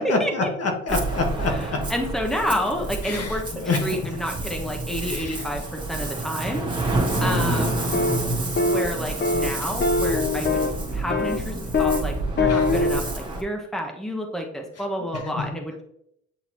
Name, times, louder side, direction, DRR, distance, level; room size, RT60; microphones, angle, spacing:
voice 1, 0.0-1.9 3.0-4.2 5.0-5.5 7.1-8.4 12.5-12.9 15.1-15.5, left 2 dB, 55° left, 3 dB, 1.5 m, -28 dB
Ocean, 0.9-13.4, right 2 dB, 15° right, 1.8 m, -29 dB
voice 2, 1.5-3.4 3.8-6.7 7.2-7.8 8.7-10.7 10.9-15.8, equal, ahead, 2 dB, 1.1 m, -29 dB
sound 1, 4.3-5.7 6.0-7.1 9.8-11.4, right 2 dB, 85° right, 1.4 m, -42 dB
sound 2, 7.9-8.2 8.6-8.9 9.2-9.5 9.8-10.8 11.1-11.4 11.7-12.0 12.4-13.0, left 3 dB, 35° left, 0.6 m, -22 dB
8.6 x 3.9 x 3.0 m, 0.74 s
cardioid pair, 90°, 30 cm